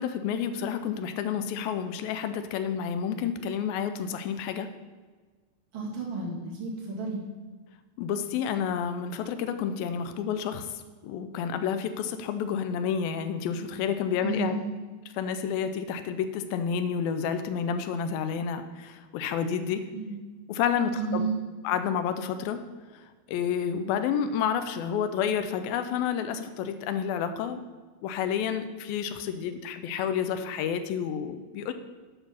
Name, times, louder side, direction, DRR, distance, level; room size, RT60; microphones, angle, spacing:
voice 1, 0.0-4.7 8.0-14.6 15.1-19.8 20.5-21.3 21.6-22.6 23.3-27.6 28.0-31.7, left 7 dB, 80° left, 9 dB, 2.3 m, -30 dB
voice 2, 5.7-7.2 14.2-14.8 19.9-20.2 21.0-21.4, right 4 dB, 40° right, -4 dB, 2.6 m, -31 dB
9.7 x 5.6 x 5.7 m, 1.4 s
omnidirectional pair, 4.4 m